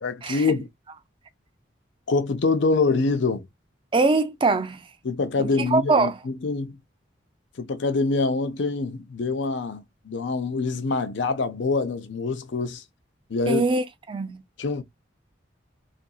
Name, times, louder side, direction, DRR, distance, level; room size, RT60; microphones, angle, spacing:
voice 1, 0.0-0.7 2.1-3.5 5.0-6.8 7.6-12.8 13.3-13.6 14.6-14.8, left 3 dB, 70° left, 0.5 m, -25 dB
voice 2, 3.9-4.8 5.4-6.2 13.5-14.4, right 3 dB, 25° right, 0.3 m, -23 dB
2.7 x 2.5 x 2.3 m
head